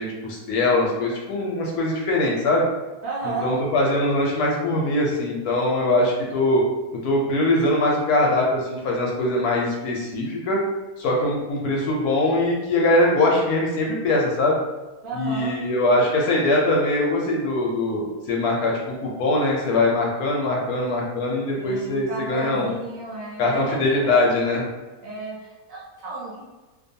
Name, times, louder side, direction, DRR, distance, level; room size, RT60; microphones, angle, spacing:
voice 1, 0.0-2.7 3.2-6.6 7.0-10.6 11.0-14.6 15.1-22.7 23.4-24.6, left 2 dB, 70° left, -2 dB, 1.0 m, -22 dB
voice 2, 3.0-3.5 15.0-15.5 21.6-24.2 25.0-26.4, right 3 dB, 70° right, -5 dB, 0.8 m, -33 dB
2.6 x 2.2 x 2.6 m, 1.2 s
omnidirectional pair, 1.8 m